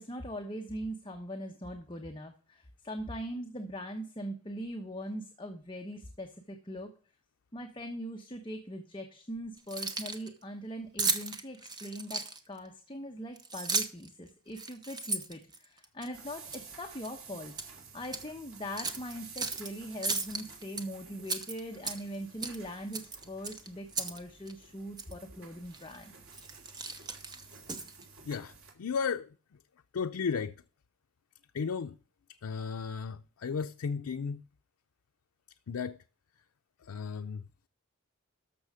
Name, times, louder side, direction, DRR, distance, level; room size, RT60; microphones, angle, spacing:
voice 1, 0.0-6.9 7.5-17.5 17.9-26.1, equal, 20° left, 1.0 m, -41 dB
Keys jangling, 9.6-10.3 11.0-12.6 13.4-14.1 14.5-16.1 16.5-16.7 17.0-17.7 18.0-18.2 18.8-19.7 20.0-20.8 21.2-22.2 22.4-22.6 22.9-24.2 24.5-24.6 25.0-25.1 25.7-26.0 26.3-28.0, right 4 dB, 20° right, 0.9 m, -35 dB
sound 1, 16.1-28.7, right 5 dB, 70° right, 3.0 m, -52 dB
voice 2, 28.2-29.4 29.9-30.6 31.5-32.0 32.3-34.5 35.7-36.0 36.8-37.4, left 5 dB, 85° left, 0.5 m, -34 dB
13.0 x 6.3 x 4.9 m
head